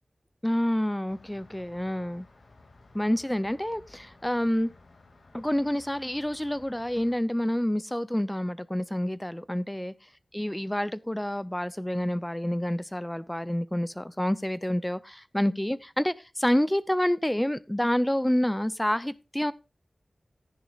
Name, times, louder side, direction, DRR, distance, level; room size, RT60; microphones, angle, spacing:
voice 1, 0.4-2.3 2.9-4.7 5.3-9.9 10.3-19.5, equal, 10° left, 0.5 m, -28 dB
sound 1, 1.1-7.2, left 2 dB, 75° left, 2.2 m, -55 dB
13.5 x 10.5 x 2.4 m
wide cardioid pair, 60°, 0 cm